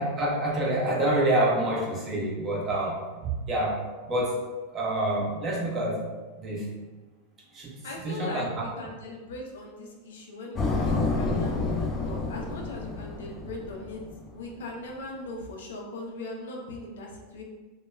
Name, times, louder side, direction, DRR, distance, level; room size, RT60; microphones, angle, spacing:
voice 1, 0.0-3.8 4.1-4.4 4.7-6.0 6.4-6.7 7.5-8.6, right 1 dB, 30° right, -3 dB, 0.8 m, -27 dB
voice 2, 7.8-14.0 14.3-17.4, left 2 dB, 85° left, -1 dB, 0.6 m, -39 dB
sound 1, 10.6-14.3, left 3 dB, 25° left, 0.4 m, -29 dB
2.3 x 2.1 x 3.1 m, 1.3 s
hypercardioid pair, 115°, 0 cm